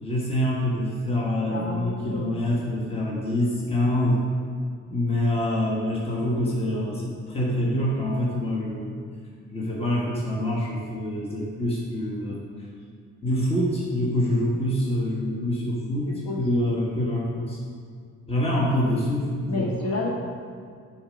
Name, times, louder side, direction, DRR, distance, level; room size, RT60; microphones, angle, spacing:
voice 1, 0.0-4.2 4.9-9.0 9.5-12.4 13.2-16.1 16.4-17.6 18.3-20.0, left 1 dB, 20° left, -4 dB, 1.4 m, -26 dB
voice 2, 1.5-2.5 16.0-16.4 19.4-20.1, left 2 dB, 55° left, -3 dB, 2.0 m, -31 dB
8.7 x 4.4 x 5.1 m, 2.1 s
cardioid pair, 90°, 30 cm